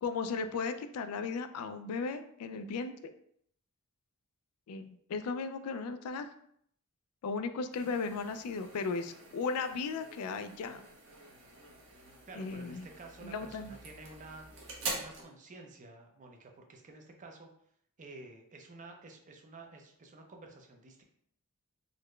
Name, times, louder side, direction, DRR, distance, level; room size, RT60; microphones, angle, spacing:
voice 1, 0.0-2.9 4.7-6.3 7.2-10.8 12.4-12.9 13.2-13.8, left 4 dB, 80° left, 10 dB, 0.3 m, -36 dB
sound 1, 7.7-15.3, right 3 dB, 60° right, 0.9 m, -45 dB
voice 2, 12.3-14.4 14.9-17.5 18.0-21.0, right 3 dB, 35° right, 2 dB, 0.5 m, -51 dB
3.9 x 2.2 x 3.1 m, 0.67 s
head